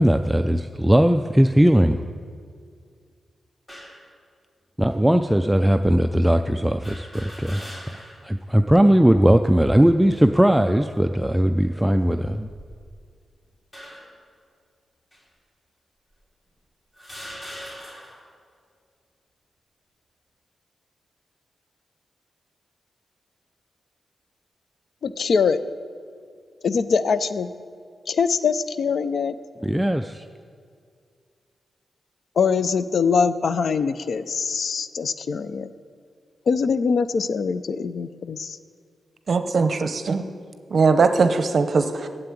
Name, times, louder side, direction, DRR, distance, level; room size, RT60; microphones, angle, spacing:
voice 1, 0.0-2.0 4.8-12.5 29.6-30.2, equal, 5° right, 7 dB, 0.3 m, -19 dB
sound 1, 3.7-4.1 4.9-5.0 6.8-8.3 8.7-8.8 10.0-10.4 11.1-11.3 12.3-13.1 13.7-14.2 15.1-15.2 16.1-16.2 17.0-18.3, equal, 30° left, 2.7 m, -41 dB
voice 2, 25.0-25.6 26.6-27.5 28.1-29.4 32.4-35.7 36.5-38.6, left 5 dB, 65° left, 13 dB, 0.5 m, -23 dB
voice 3, 39.3-40.2 40.7-42.1, right 4 dB, 55° right, 9 dB, 0.7 m, -20 dB
9.5 x 7.9 x 8.4 m, 2.2 s
cardioid pair, 95°, 0 cm